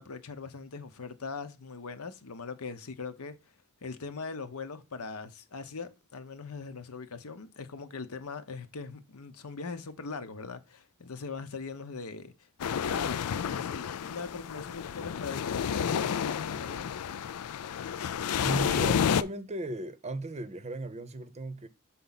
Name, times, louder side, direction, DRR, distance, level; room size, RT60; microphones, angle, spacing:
voice 1, 0.0-3.4 3.8-16.9, left 4 dB, 70° left, 0.9 m, -41 dB
sound 1, 12.6-19.2, left 8 dB, 90° left, 0.4 m, -30 dB
voice 2, 18.4-21.7, right 2 dB, 30° right, 0.7 m, -36 dB
6.8 x 4.2 x 4.0 m
head